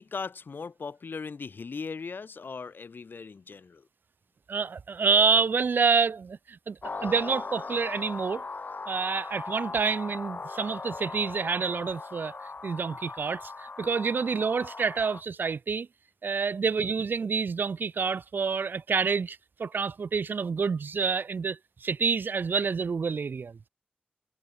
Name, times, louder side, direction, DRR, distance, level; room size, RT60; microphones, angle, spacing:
voice 1, 0.0-3.9, left 5 dB, 80° left, 1.3 m, -38 dB
voice 2, 4.5-8.4 8.9-15.9 16.2-23.6, right 5 dB, 75° right, 0.4 m, -28 dB
sound 1, 6.8-15.2, left 4 dB, 55° left, 1.7 m, -39 dB
wide cardioid pair, 75°, 3 cm